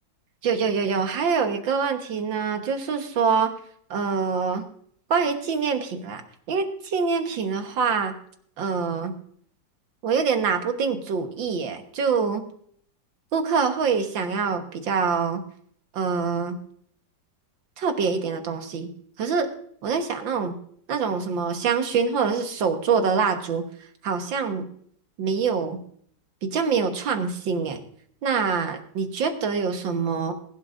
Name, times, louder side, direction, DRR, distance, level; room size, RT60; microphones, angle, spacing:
voice 1, 0.4-3.6 3.9-4.6 5.1-6.2 6.5-8.1 8.6-9.1 10.0-12.4 13.3-15.4 15.9-16.6 17.8-18.9 19.2-19.5 19.8-20.6 20.9-23.6 24.0-24.7 25.2-25.8 26.4-27.8 28.2-30.3, right 5 dB, 85° right, 6 dB, 2.1 m, -25 dB
21.5 x 11.5 x 2.6 m, 0.62 s
omnidirectional pair, 2.0 m